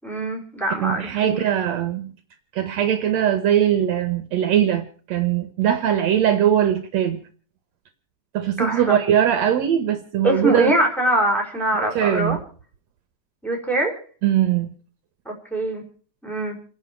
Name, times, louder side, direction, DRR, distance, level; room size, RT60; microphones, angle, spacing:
voice 1, 0.0-1.5 8.6-9.0 10.2-12.4 13.4-14.0 15.2-15.9 16.2-16.6, right 1 dB, ahead, 4.5 m, -23 dB
voice 2, 0.8-2.1 2.5-7.2 8.3-10.7 12.0-12.4 14.2-14.7, right 10 dB, 70° right, 2.2 m, -21 dB
28.5 x 11.0 x 4.6 m
omnidirectional pair, 3.4 m